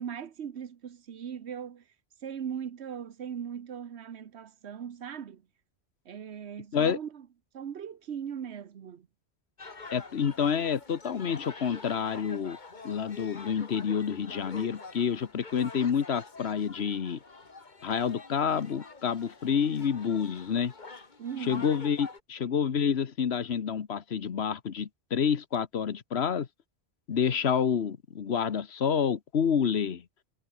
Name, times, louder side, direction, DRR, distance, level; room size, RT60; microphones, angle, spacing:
voice 1, 0.0-1.8 2.2-5.4 6.0-7.3 7.5-9.1 21.2-21.7, right 8 dB, 80° right, 1.3 m, -39 dB
sound 1, 9.6-22.2, left 3 dB, 45° left, 1.9 m, -46 dB
voice 2, 9.9-12.6 12.8-17.2 17.8-20.7 21.5-26.5 27.1-30.0, left 7 dB, 75° left, 1.4 m, -28 dB
omnidirectional pair, 1.1 m